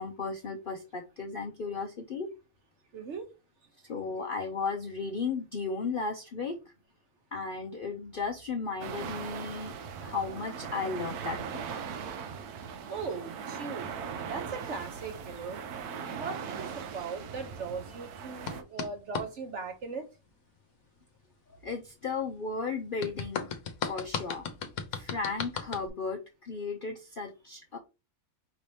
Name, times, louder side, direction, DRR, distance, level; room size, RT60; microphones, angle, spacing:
voice 1, 0.0-2.3 3.9-6.6 7.3-9.7 10.0-11.4 11.7-11.8 21.6-23.5 23.9-24.5 24.9-27.8, left 4 dB, 55° left, 2 dB, 0.6 m, -35 dB
voice 2, 2.9-3.3 12.9-15.6 16.1-20.1, right 4 dB, 55° right, 6 dB, 1.0 m, -39 dB
sound 1, 8.8-18.6, right 6 dB, 90° right, 1.2 m, -39 dB
sound 2, 18.5-19.3 23.0-25.9, left 6 dB, 70° left, 1.2 m, -35 dB
5.2 x 2.8 x 3.3 m, 0.28 s
omnidirectional pair, 1.6 m